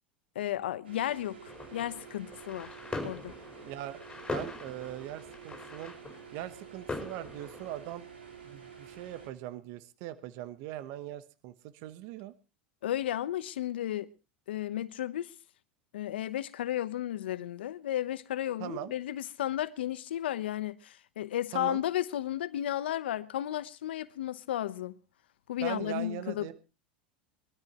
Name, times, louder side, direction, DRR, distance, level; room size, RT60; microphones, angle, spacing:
voice 1, 0.3-2.7 3.0-3.3 12.8-14.1 14.5-15.3 15.9-24.9 25.5-26.5, left 12 dB, 80° left, 0.9 m, -33 dB
sound 1, 0.8-9.3, right 7 dB, 90° right, 3.6 m, -50 dB
sound 2, 1.5-7.9, left 2 dB, 10° left, 4.9 m, -42 dB
voice 2, 3.6-4.0 4.3-5.9 6.3-8.1 8.4-12.3 18.6-18.9 21.5-21.8 25.6-26.5, right 13 dB, 60° right, 1.0 m, -40 dB
22.0 x 13.0 x 3.0 m
hypercardioid pair, 95°, 6 cm